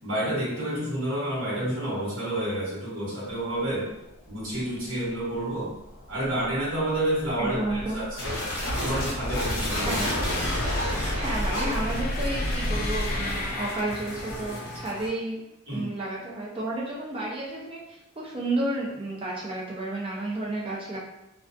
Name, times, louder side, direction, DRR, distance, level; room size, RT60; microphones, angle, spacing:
voice 1, 0.0-3.9 4.3-5.8 6.1-8.4 8.8-10.0 15.7-15.9, right 1 dB, 60° right, -7 dB, 1.1 m, -29 dB
sound 1, 3.3-14.7, left 1 dB, 40° left, 0.3 m, -34 dB
voice 2, 7.4-8.0 9.9-10.1 11.1-15.4 15.7-21.0, right 2 dB, 25° right, -3 dB, 0.4 m, -31 dB
sound 2, 8.2-15.1, left 1 dB, 70° left, 0.8 m, -31 dB
2.3 x 2.3 x 2.4 m, 0.92 s
head